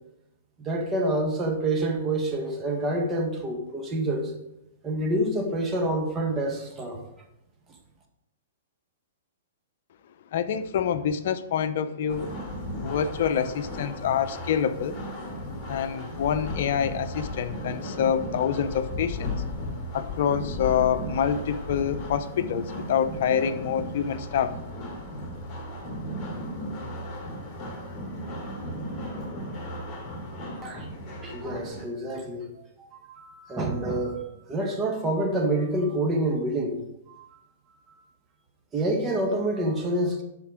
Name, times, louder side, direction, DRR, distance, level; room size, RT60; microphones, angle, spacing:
voice 1, 0.6-4.3 4.8-7.0 30.6-30.9 31.2-32.5 32.8-34.2 34.5-36.8 37.1-37.3 37.9-38.0 38.7-40.2, right 1 dB, 20° right, 1.8 m, -27 dB
voice 2, 10.3-12.3 12.8-15.0 15.7-19.4 19.9-24.6, left 8 dB, 60° left, 0.7 m, -26 dB
sound 1, 12.1-31.8, left 1 dB, 25° left, 3.0 m, -35 dB
12.0 x 4.5 x 5.0 m
hypercardioid pair, 125°, 0 cm